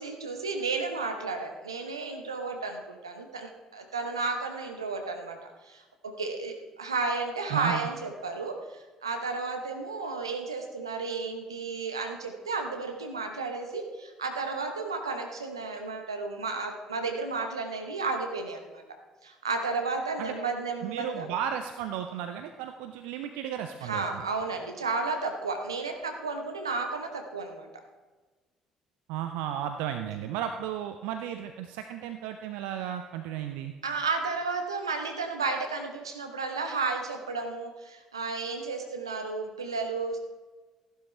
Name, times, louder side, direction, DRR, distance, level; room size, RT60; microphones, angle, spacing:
voice 1, 0.0-18.8 19.2-21.3 23.8-27.7 33.8-40.2, right 4 dB, 85° right, 4 dB, 1.0 m, -33 dB
voice 2, 7.5-7.9 20.2-20.3 20.8-24.2 29.1-33.7, right 10 dB, 70° right, 7 dB, 0.6 m, -34 dB
14.5 x 11.5 x 3.3 m, 1.3 s
figure-of-eight pair, 50°, 2 cm